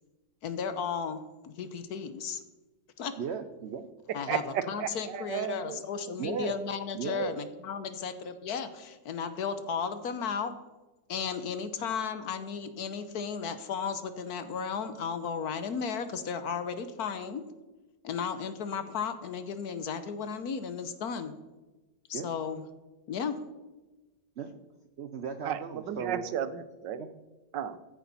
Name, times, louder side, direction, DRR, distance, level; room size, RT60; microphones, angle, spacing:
voice 1, 0.4-2.4 3.0-3.2 4.1-10.5 11.1-17.4 18.0-21.3 22.1-22.6 23.1-23.4, left 6 dB, 65° left, 11 dB, 1.3 m, -34 dB
voice 2, 3.2-3.9 6.2-6.6 6.9-7.4 22.1-22.3 24.4-24.6 25.0-26.2 27.0-27.1, right 6 dB, 65° right, 9 dB, 0.6 m, -36 dB
voice 3, 4.3-5.8 25.4-27.0 27.5-27.8, right 9 dB, 80° right, 13 dB, 1.4 m, -34 dB
14.0 x 10.0 x 4.1 m, 1.1 s
omnidirectional pair, 1.9 m